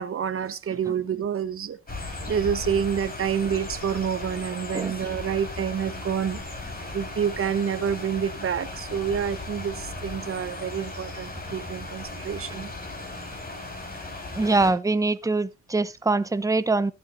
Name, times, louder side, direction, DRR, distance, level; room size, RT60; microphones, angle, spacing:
voice 1, 0.0-12.7, right 8 dB, 45° right, 1.2 m, -28 dB
sound 1, 1.9-14.7, left 2 dB, 30° left, 4.8 m, -36 dB
voice 2, 14.3-16.9, right 3 dB, 10° right, 0.8 m, -23 dB
21.0 x 8.1 x 2.7 m
cardioid pair, 90°, 30 cm